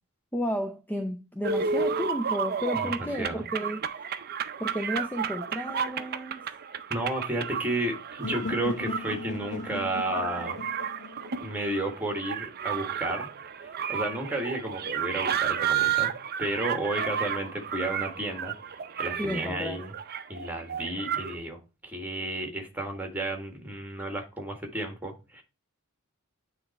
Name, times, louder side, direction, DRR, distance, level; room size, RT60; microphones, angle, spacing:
voice 1, 0.3-3.8 4.6-6.4 19.2-19.8, equal, 10° left, 0.5 m, -32 dB
sound 1, 1.4-21.4, right 7 dB, 45° right, 0.6 m, -32 dB
voice 2, 6.9-10.7 11.4-16.1 16.4-18.5 19.0-19.9 20.3-25.4, right 1 dB, 10° right, 1.6 m, -32 dB
sound 2, 8.2-12.2, left 3 dB, 55° left, 0.5 m, -38 dB
9.3 x 3.3 x 4.1 m
head